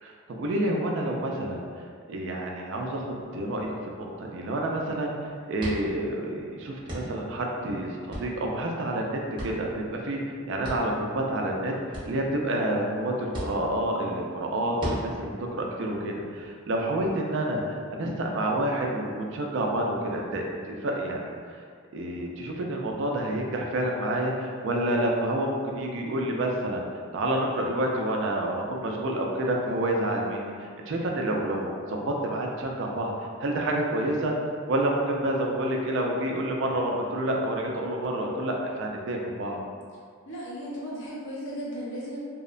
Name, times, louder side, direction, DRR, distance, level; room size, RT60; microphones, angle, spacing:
voice 1, 0.0-21.6 21.9-26.9 27.1-30.5 30.9-33.1 33.4-34.3 34.7-39.6, right 1 dB, 60° right, 0 dB, 0.3 m, -29 dB
sound 1, 2.9-17.1, equal, 20° right, 0.6 m, -41 dB
voice 2, 40.3-42.2, equal, 60° left, -7 dB, 0.7 m, -35 dB
2.8 x 2.0 x 2.4 m, 2.1 s
head